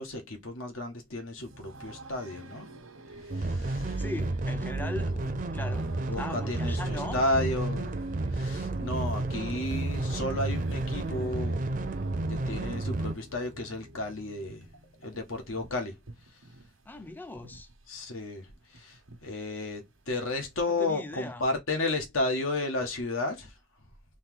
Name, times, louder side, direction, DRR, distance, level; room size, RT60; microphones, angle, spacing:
voice 1, 0.0-2.7 3.3-4.0 5.1-5.3 6.1-8.0 8.3-11.8 12.3-14.7 15.0-16.0 17.9-23.5, left 2 dB, 90° left, 1.5 m, -33 dB
sound 1, 1.4-20.6, right 2 dB, 85° right, 1.1 m, -49 dB
sound 2, 3.3-13.1, right 2 dB, 40° right, 0.5 m, -31 dB
voice 2, 4.0-5.1 5.5-5.9 6.2-7.2 16.9-17.7 20.7-21.4, left 2 dB, 10° left, 0.4 m, -39 dB
4.1 x 3.2 x 3.7 m
head